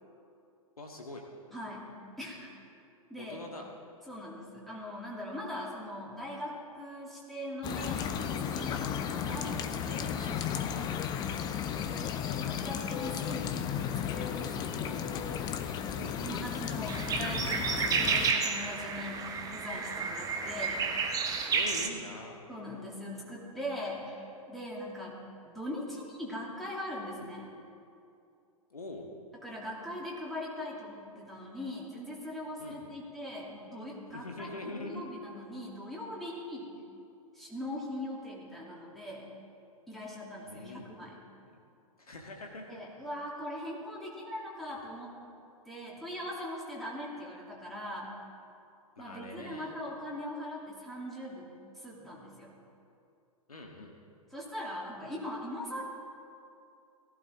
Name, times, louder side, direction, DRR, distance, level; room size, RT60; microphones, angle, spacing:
voice 1, 0.8-1.2 3.2-3.7 15.9-16.5 21.5-22.5 28.7-29.1 32.6-32.9 34.1-35.0 40.4-40.9 41.4-41.6 42.0-42.8 49.0-49.8 53.5-54.0, left 2 dB, 80° left, 1 dB, 1.8 m, -44 dB
voice 2, 1.5-2.5 3.1-3.4 4.1-10.9 12.3-13.6 14.0-15.1 15.9-20.9 22.5-27.5 29.4-36.8 37.3-39.2 39.9-41.2 42.7-45.1 45.7-48.2 49.0-51.5 51.7-52.6 54.3-55.8, left 1 dB, ahead, -5 dB, 2.7 m, -41 dB
sound 1, 7.6-18.3, left 8 dB, 20° left, 0.7 m, -34 dB
sound 2, 16.9-21.9, right 5 dB, 20° right, 1.0 m, -31 dB
18.0 x 14.5 x 3.6 m, 2.6 s
figure-of-eight pair, 110°, 19 cm